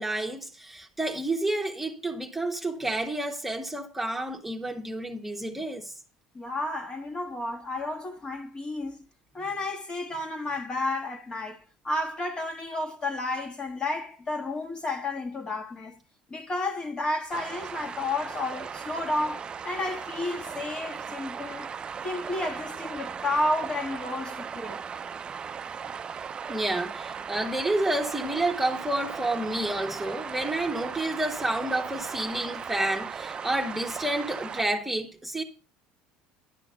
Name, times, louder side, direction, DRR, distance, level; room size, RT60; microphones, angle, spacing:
voice 1, 0.0-5.9 21.1-21.2 26.5-35.4, right 1 dB, 5° right, 1.3 m, -30 dB
voice 2, 6.3-9.0 9.3-16.0 16.3-21.7 22.0-24.8, left 2 dB, 30° left, 1.7 m, -32 dB
sound 1, 17.3-34.6, right 6 dB, 30° right, 0.5 m, -37 dB
11.0 x 6.3 x 5.2 m
supercardioid pair, 85°, 3 cm